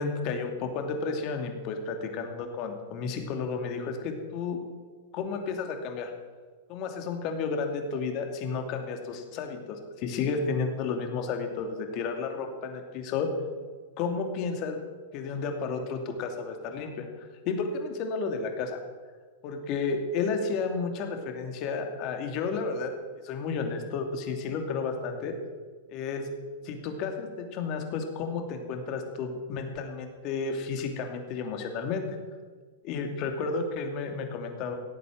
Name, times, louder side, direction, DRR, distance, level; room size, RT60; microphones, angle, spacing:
voice 1, 0.0-4.6 5.1-6.1 6.7-13.3 14.0-14.8 15.1-17.1 17.4-18.8 19.4-22.9 23.2-25.3 25.9-26.2 26.6-32.0 32.8-34.7, left 4 dB, 45° left, 4 dB, 2.7 m, -32 dB
17.0 x 8.5 x 7.5 m, 1.5 s
hypercardioid pair, 115°, 0 cm